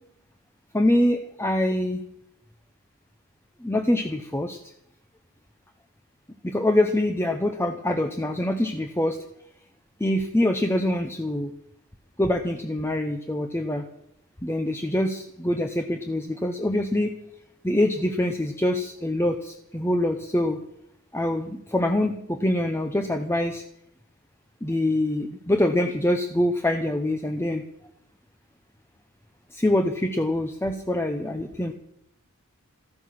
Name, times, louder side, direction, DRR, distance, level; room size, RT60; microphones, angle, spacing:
voice 1, 0.7-2.0 3.6-4.6 6.4-9.2 10.0-11.5 12.2-13.8 14.4-17.1 17.6-20.6 21.1-23.6 24.6-27.6 29.5-31.7, left 1 dB, 10° left, 6 dB, 0.8 m, -24 dB
14.5 x 14.0 x 6.0 m, 0.77 s
head